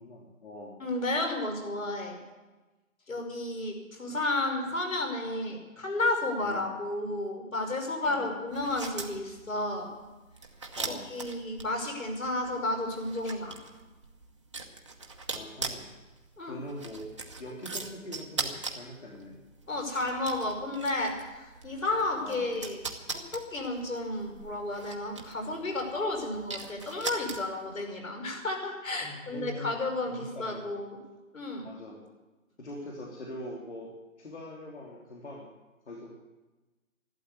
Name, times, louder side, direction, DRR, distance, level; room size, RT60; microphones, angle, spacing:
voice 1, 0.0-0.8 6.4-6.7 8.1-8.4 10.8-11.1 13.2-13.3 15.3-15.9 16.5-17.1 17.4-19.4 22.2-22.4 29.0-29.8 30.1-30.7 31.6-32.0 32.6-33.9 34.2-35.5 35.9-36.1, left 1 dB, 55° left, -3 dB, 3.0 m, -42 dB
voice 2, 0.8-2.2 3.1-9.9 10.9-13.5 16.4-16.6 19.7-22.8 23.1-31.0 31.3-31.7, left 2 dB, 75° left, 2 dB, 5.5 m, -32 dB
sound 1, 8.5-27.7, right 3 dB, 20° right, 0.9 m, -41 dB
13.5 x 12.0 x 8.3 m, 1.2 s
hypercardioid pair, 170°, 40 cm